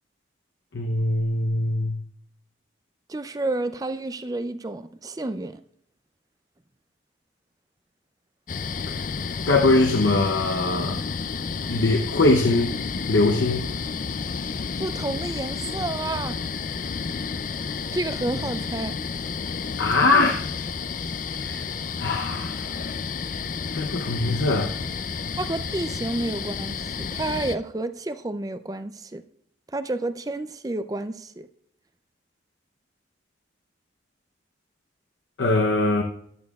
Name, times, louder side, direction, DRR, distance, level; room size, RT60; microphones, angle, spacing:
voice 1, 0.7-2.0 8.9-9.0 9.5-11.0 11.7-12.8 13.1-13.7 19.8-20.5 21.3-21.7 22.0-22.7 23.7-24.8 35.4-36.0, left 2 dB, 75° left, 2 dB, 0.8 m, -22 dB
voice 2, 3.1-5.6 14.8-16.4 17.9-18.9 25.4-29.2 29.7-31.5, right 2 dB, 20° right, 11 dB, 0.4 m, -30 dB
sound 1, 8.5-27.6, left 5 dB, 45° left, 0.4 m, -31 dB
14.0 x 10.5 x 2.4 m, 0.69 s
head